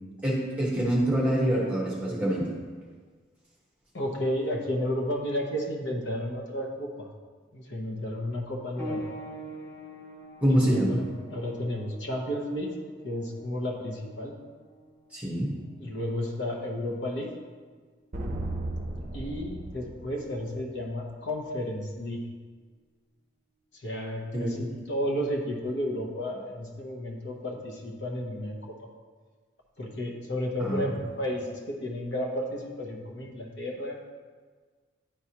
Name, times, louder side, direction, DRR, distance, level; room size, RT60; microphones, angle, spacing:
voice 1, 0.2-2.5 10.4-11.0 15.1-15.6 24.3-24.6 30.6-30.8, equal, 5° right, -4 dB, 1.2 m, -25 dB
voice 2, 3.9-7.1 7.5-9.1 10.5-11.0 11.3-12.7 13.0-14.3 15.8-17.3 19.1-22.2 23.7-28.7 29.8-34.0, equal, 60° left, 0 dB, 0.9 m, -32 dB
sound 1, 8.8-19.0 20.0-20.1 20.8-20.9, right 1 dB, 10° left, 2.0 m, -45 dB
sound 2, 18.1-20.8, right 1 dB, 40° right, 0.7 m, -35 dB
10.5 x 4.7 x 2.9 m, 1.5 s
head